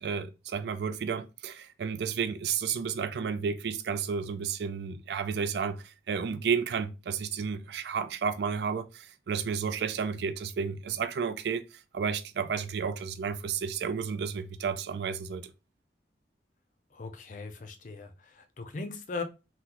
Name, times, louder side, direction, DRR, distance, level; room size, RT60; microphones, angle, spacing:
voice 1, 0.0-11.6 11.9-15.5, right 6 dB, 65° right, 0.3 m, -32 dB
voice 2, 16.9-19.2, left 4 dB, 45° left, 0.4 m, -39 dB
3.8 x 2.1 x 2.9 m
head